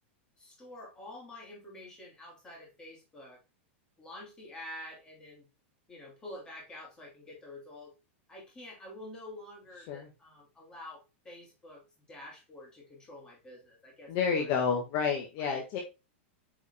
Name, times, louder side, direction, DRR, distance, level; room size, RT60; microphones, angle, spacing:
voice 1, 0.4-3.4 4.0-5.4 5.9-7.9 8.3-11.8 12.1-14.4 15.4-15.8, left 1 dB, 10° left, -2 dB, 2.9 m, -48 dB
voice 2, 14.1-15.8, left 6 dB, 40° left, 1 dB, 1.5 m, -30 dB
8.8 x 4.8 x 2.2 m, 0.27 s
supercardioid pair, 165°, 7 cm